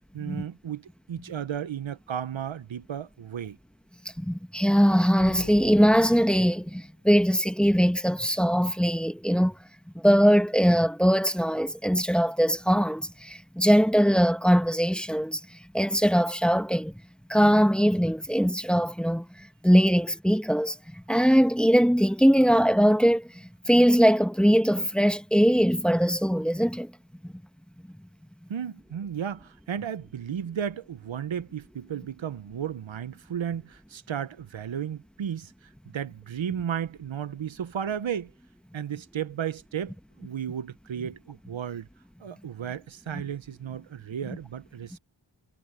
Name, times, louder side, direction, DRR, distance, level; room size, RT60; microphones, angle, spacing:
voice 1, 0.1-3.6 28.5-35.5 35.9-38.3 38.7-41.9 42.2-45.0, right 8 dB, 80° right, 0.8 m, -34 dB
voice 2, 4.2-9.6 9.9-15.4 15.7-16.9 17.3-23.3 23.7-26.9 27.2-27.3 43.1-43.2, equal, ahead, 1.2 m, -21 dB
sound 1, 5.2-6.9, left 4 dB, 70° left, 7.0 m, -44 dB
wide cardioid pair, 90°, 45 cm